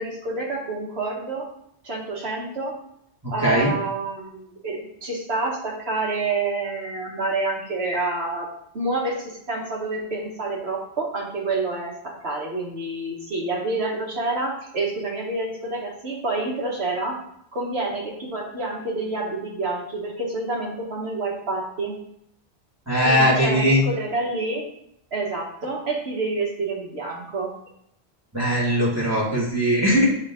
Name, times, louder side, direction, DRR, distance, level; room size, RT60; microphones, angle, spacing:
voice 1, 0.0-1.5 1.8-2.7 3.3-8.5 8.7-11.9 12.2-17.2 17.5-22.0 23.0-24.7 25.1-27.5, right 3 dB, 70° right, -2 dB, 2.0 m, -28 dB
voice 2, 3.2-3.7 22.9-23.8 28.3-30.0, equal, 15° right, -6 dB, 2.0 m, -20 dB
9.7 x 3.7 x 3.8 m, 0.73 s
omnidirectional pair, 1.1 m